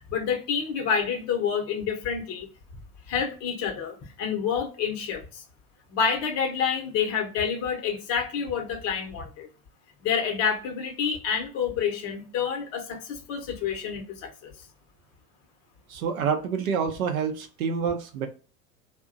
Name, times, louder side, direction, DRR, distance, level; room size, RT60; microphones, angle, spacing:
voice 1, 0.1-2.5 3.1-5.4 5.9-9.5 10.0-14.5, left 7 dB, 35° left, 0.7 m, -28 dB
voice 2, 15.9-18.3, right 6 dB, 65° right, 0.6 m, -27 dB
2.6 x 2.1 x 2.4 m
figure-of-eight pair, 90°, 46 cm